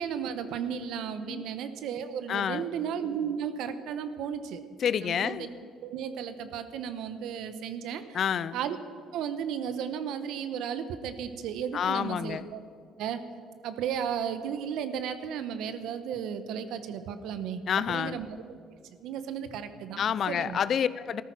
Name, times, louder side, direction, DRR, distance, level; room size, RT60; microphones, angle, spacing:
voice 1, 0.0-4.6 5.0-5.5 5.8-8.2 8.5-8.8 9.1-12.6 13.0-13.2 13.6-18.3 19.0-20.6, right 8 dB, 75° right, 11 dB, 1.1 m, -34 dB
voice 2, 2.3-2.6 4.8-5.5 8.1-8.6 11.7-12.4 17.7-18.2 20.0-21.2, left 8 dB, 55° left, 17 dB, 0.5 m, -28 dB
14.0 x 13.5 x 6.1 m, 2.3 s
cardioid pair, 90°, 0 cm